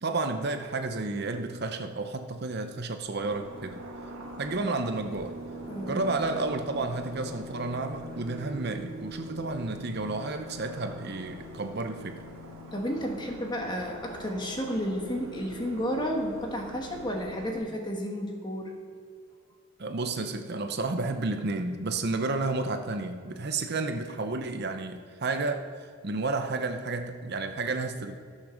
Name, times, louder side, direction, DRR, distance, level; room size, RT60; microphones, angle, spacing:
voice 1, 0.0-3.8 4.4-5.4 5.9-12.2 19.8-25.7 26.0-28.2, right 3 dB, 50° right, 7 dB, 0.7 m, -31 dB
sound 1, 3.0-17.6, equal, 75° right, 1.7 m, -42 dB
voice 2, 5.7-6.1 12.7-18.7, equal, 20° left, 1 dB, 1.4 m, -32 dB
13.5 x 6.5 x 6.3 m, 2.1 s
head